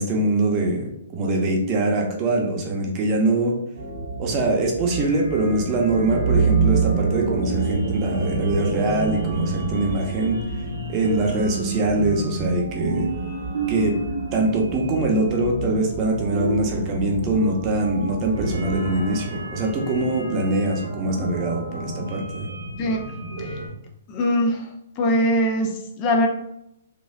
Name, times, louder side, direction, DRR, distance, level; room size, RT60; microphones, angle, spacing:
voice 1, 0.0-3.5 4.2-10.4 10.9-13.1 13.7-13.9 14.3-22.5, right 2 dB, 30° right, 0 dB, 0.8 m, -23 dB
sound 1, 3.8-23.7, right 3 dB, 80° right, 1.2 m, -28 dB
voice 2, 22.8-23.6 24.1-26.3, equal, 35° left, 2 dB, 0.6 m, -23 dB
4.2 x 2.5 x 2.5 m, 0.78 s
hypercardioid pair, 140°, 0 cm